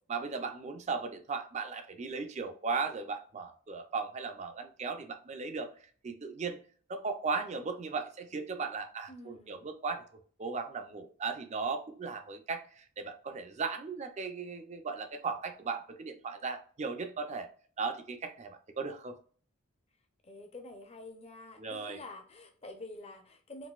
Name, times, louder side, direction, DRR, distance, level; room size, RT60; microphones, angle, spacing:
voice 1, 0.1-5.7 6.0-6.6 6.9-10.0 10.4-17.5 17.8-19.2 21.6-22.0, right 4 dB, 35° right, 7 dB, 0.4 m, -37 dB
voice 2, 9.1-9.7 20.2-23.7, left 2 dB, 30° left, 5 dB, 0.5 m, -48 dB
3.9 x 2.5 x 2.3 m, 0.43 s
head